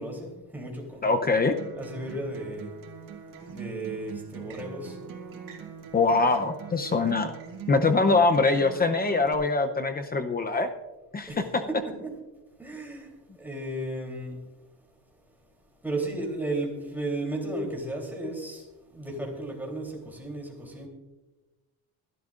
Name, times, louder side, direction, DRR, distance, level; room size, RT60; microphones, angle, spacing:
voice 1, 0.0-1.2 1.7-2.7 3.5-5.0 11.3-11.4 11.7-12.1 12.6-14.4 15.8-20.9, right 2 dB, 5° right, 0 dB, 3.3 m, -34 dB
voice 2, 1.0-1.5 5.9-7.4 7.7-10.7 11.1-11.3, left 3 dB, 25° left, 7 dB, 0.7 m, -23 dB
Acoustic guitar, 1.3-9.3, right 7 dB, 60° right, 2.5 m, -42 dB
23.5 x 12.0 x 2.5 m, 1.1 s
cardioid pair, 150°, 36 cm